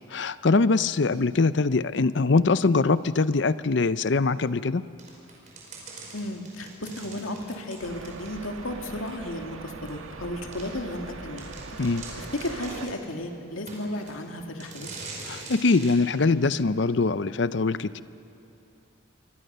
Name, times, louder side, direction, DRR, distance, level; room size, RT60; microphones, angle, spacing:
voice 1, 0.1-4.8 11.8-12.1 15.3-18.0, left 3 dB, 60° left, 15 dB, 0.6 m, -23 dB
sound 1, 5.0-8.6 9.1-9.2 9.9-10.0 10.5-10.7 11.1-11.2 11.4-13.0 13.7-14.2 14.6-16.0, right 3 dB, 35° right, 5.1 m, -43 dB
voice 2, 6.1-11.5 12.2-14.9, left 1 dB, 85° left, 3 dB, 2.3 m, -34 dB
sound 2, 7.8-12.9, right 3 dB, 85° right, 1.5 m, -41 dB
27.0 x 23.0 x 6.8 m, 2.8 s
head